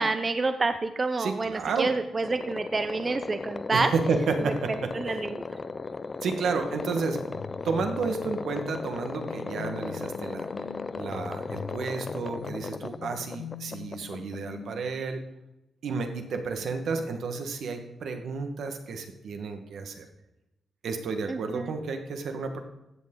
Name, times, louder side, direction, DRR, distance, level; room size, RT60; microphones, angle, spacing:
voice 1, 0.0-3.9 4.4-4.5 4.9-5.4 21.3-21.7, right 3 dB, 30° right, 9 dB, 0.5 m, -28 dB
voice 2, 1.2-1.9 3.7-5.2 6.2-7.4 7.6-10.5 10.9-15.2 15.8-20.1 20.8-22.6, right 4 dB, 75° right, 6 dB, 1.4 m, -31 dB
sound 1, 2.2-14.9, left 4 dB, 30° left, 0.4 m, -36 dB
sound 2, 7.3-14.9, left 8 dB, 85° left, 1.2 m, -43 dB
14.5 x 8.4 x 3.8 m, 0.96 s
wide cardioid pair, 135°, 0 cm